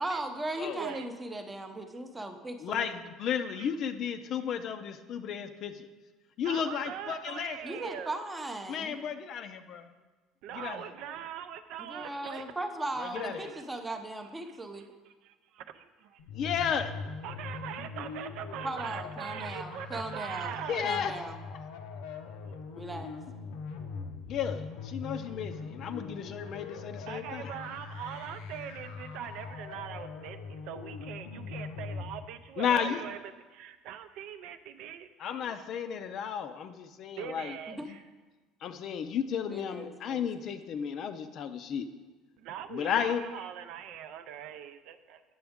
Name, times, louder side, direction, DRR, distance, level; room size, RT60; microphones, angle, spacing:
voice 1, 0.0-2.9 7.6-9.0 11.8-14.8 18.6-20.5 20.8-21.4 22.8-23.1 37.7-37.9 39.5-40.5, right 2 dB, 10° right, 6 dB, 0.6 m, -38 dB
voice 2, 0.7-1.1 3.5-3.7 6.4-8.2 10.4-12.4 13.2-13.7 15.1-16.2 17.2-20.9 27.1-35.8 37.2-38.0 42.4-45.2, right 9 dB, 65° right, 10 dB, 0.4 m, -42 dB
voice 3, 2.6-5.9 6.4-7.6 8.7-9.9 10.5-10.8 13.2-13.5 16.3-16.9 20.7-21.1 24.3-27.5 32.6-33.0 35.2-37.5 38.6-41.9 42.7-43.2, left 8 dB, 45° left, 9 dB, 0.4 m, -33 dB
sound 1, 16.2-32.2, left 4 dB, 90° left, 0.7 m, -42 dB
8.9 x 7.0 x 3.6 m, 1.3 s
cardioid pair, 150°, 0 cm